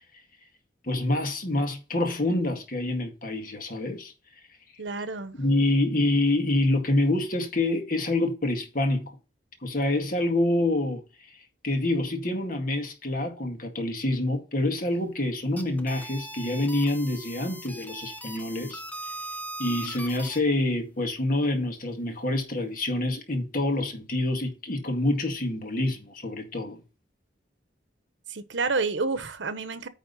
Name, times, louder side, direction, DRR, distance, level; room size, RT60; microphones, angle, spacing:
voice 1, 0.8-4.1 5.3-9.2 9.6-11.0 11.6-18.8 19.6-26.8, left 1 dB, 50° left, 1.9 m, -26 dB
voice 2, 4.8-5.4 28.3-29.9, right 4 dB, 90° right, 1.1 m, -29 dB
sound 1, 15.4-20.4, right 1 dB, 10° left, 0.8 m, -39 dB
9.6 x 3.6 x 6.7 m
head